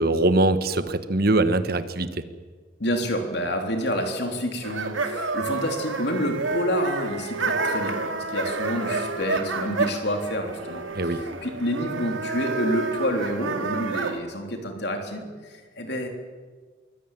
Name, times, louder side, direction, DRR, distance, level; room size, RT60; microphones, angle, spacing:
voice 1, 0.0-2.2 10.9-11.2, right 2 dB, 50° right, 11 dB, 1.3 m, -22 dB
voice 2, 2.8-16.1, equal, 55° left, 4 dB, 3.6 m, -28 dB
sound 1, 4.6-14.2, right 3 dB, 90° right, 2.3 m, -29 dB
23.5 x 16.5 x 9.3 m, 1.5 s
head